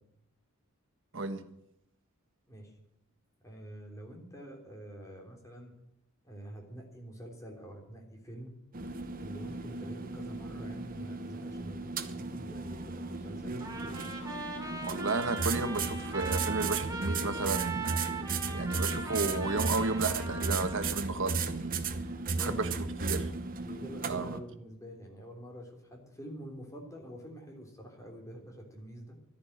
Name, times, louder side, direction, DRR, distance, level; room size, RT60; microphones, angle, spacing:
voice 1, 3.4-5.7 6.2-8.6 9.2-14.1 22.3-22.8 23.6-29.2, equal, 15° left, 3.3 m, -46 dB
sound 1, 8.7-24.4, right 4 dB, 40° right, 1.0 m, -35 dB
Trumpet, 13.6-21.1, right 4 dB, 15° right, 2.6 m, -40 dB
voice 2, 14.8-21.8 22.4-22.7 23.0-23.3 24.0-24.4, right 3 dB, 60° right, 1.3 m, -33 dB
12.5 x 10.5 x 10.0 m
head